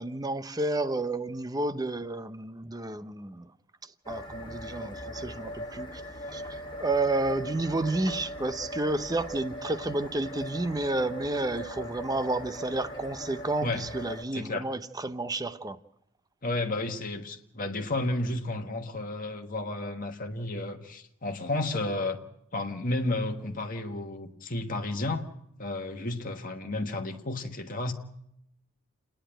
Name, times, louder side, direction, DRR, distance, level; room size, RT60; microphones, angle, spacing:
voice 1, 0.0-3.5 4.1-6.0 6.3-15.8, right 2 dB, 20° right, 0.7 m, -31 dB
sound 1, 4.0-14.2, equal, 20° left, 1.8 m, -40 dB
voice 2, 14.3-14.6 16.4-22.2 22.5-25.2 25.6-27.9, left 2 dB, 40° left, 1.3 m, -32 dB
29.5 x 10.0 x 8.9 m
head